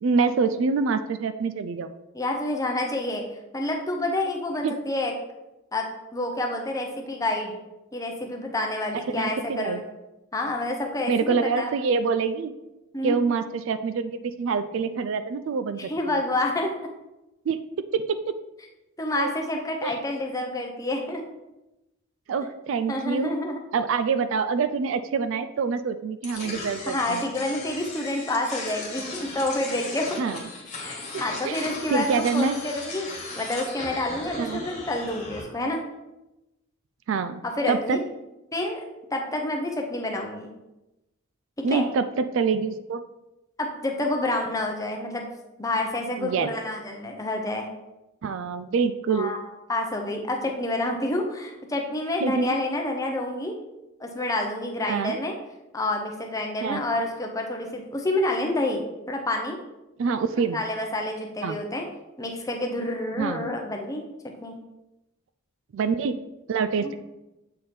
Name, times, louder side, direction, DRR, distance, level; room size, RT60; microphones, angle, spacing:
voice 1, 0.0-1.9 4.6-4.7 9.2-9.8 11.1-12.5 13.0-16.2 17.5-17.6 17.9-18.0 19.2-19.3 19.8-20.0 22.3-23.3 23.7-27.2 30.2-30.4 31.4-32.6 34.4-34.7 37.1-37.4 37.7-38.0 41.6-43.0 46.2-46.5 48.2-49.3 52.2-52.6 54.9-55.2 56.6-56.8 60.0-60.6 61.4-61.6 63.2-63.5 65.7-66.2 66.5-67.0, right 5 dB, 60° right, 10 dB, 0.3 m, -26 dB
voice 2, 2.1-3.2 3.5-5.1 5.7-5.9 6.1-7.6 7.9-9.8 10.3-11.7 12.9-13.2 15.8-16.7 19.0-21.2 22.9-23.6 26.9-30.2 30.8-35.8 37.4-38.0 38.5-38.8 39.1-40.5 41.6-41.8 43.6-45.2 45.6-47.7 49.1-49.4 49.7-53.5 54.0-55.3 55.7-58.8 59.1-59.6 60.5-61.8 62.2-64.1 64.4-64.6 66.8-66.9, left 1 dB, 15° left, 1 dB, 0.7 m, -28 dB
sound 1, 26.2-35.4, left 3 dB, 30° left, 1.5 m, -37 dB
7.5 x 3.4 x 4.3 m, 0.98 s
head